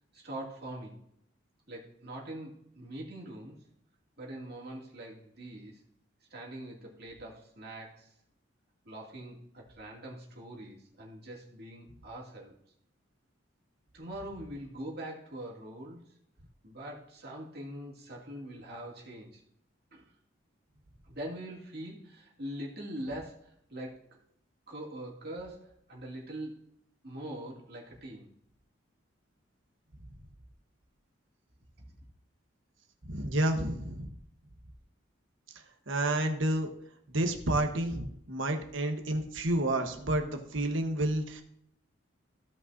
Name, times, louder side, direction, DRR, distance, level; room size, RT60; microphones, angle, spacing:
voice 1, 0.1-1.0 1.7-3.6 4.2-5.8 6.3-8.1 8.8-12.5 13.9-16.0 16.6-19.4 19.9-20.1 21.1-24.2 24.7-26.6 27.0-28.3, right 1 dB, 50° right, -3 dB, 2.5 m, -43 dB
voice 2, 33.0-34.1 35.9-36.7 37.1-41.4, right 1 dB, 75° right, 5 dB, 1.2 m, -30 dB
16.0 x 5.4 x 2.7 m, 0.73 s
head